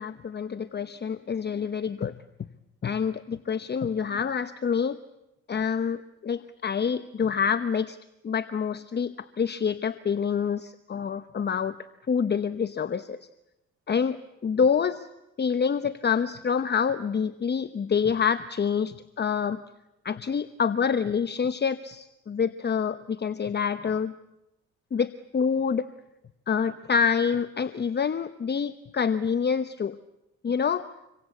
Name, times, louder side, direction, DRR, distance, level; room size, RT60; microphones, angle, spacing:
voice 1, 0.0-2.1 2.8-5.0 5.5-8.0 8.2-11.8 12.1-13.3 13.9-15.1 15.4-19.6 20.0-24.1 24.9-25.9 26.5-30.0 30.4-30.9, left 6 dB, 35° left, 11 dB, 0.9 m, -27 dB
27.0 x 23.5 x 8.5 m, 0.91 s
cardioid pair, 90°, 30 cm